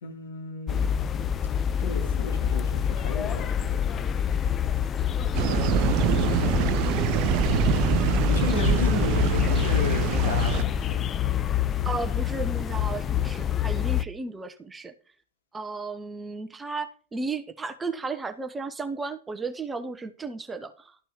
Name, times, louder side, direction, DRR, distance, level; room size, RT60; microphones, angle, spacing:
voice 1, 0.0-0.8 1.8-4.1 5.4-6.8 8.3-11.0, left 4 dB, 60° left, 3.2 m, -34 dB
sound 1, 0.7-14.1, left 9 dB, 25° left, 0.6 m, -26 dB
sound 2, 5.3-10.6, right 13 dB, 40° right, 0.6 m, -25 dB
voice 2, 11.8-14.9 15.5-21.0, right 3 dB, 15° right, 1.1 m, -34 dB
13.0 x 5.9 x 4.8 m
figure-of-eight pair, 90°, 0 cm